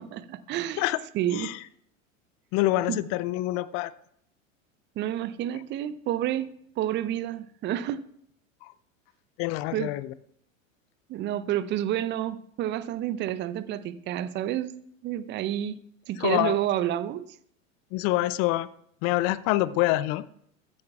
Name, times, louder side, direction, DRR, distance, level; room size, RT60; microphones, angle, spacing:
voice 1, 0.0-0.8 1.1-1.5 2.9-3.0 5.0-8.0 9.7-9.9 11.1-14.7 15.0-15.7 16.1-17.2, right 12 dB, 25° right, 16 dB, 0.6 m, -29 dB
voice 2, 2.5-3.9 8.6-8.7 9.4-10.1 16.2-16.6 17.9-18.7 19.0-20.2, left 17 dB, 35° left, 17 dB, 0.6 m, -26 dB
15.0 x 13.0 x 2.4 m, 0.67 s
figure-of-eight pair, 85°, 40 cm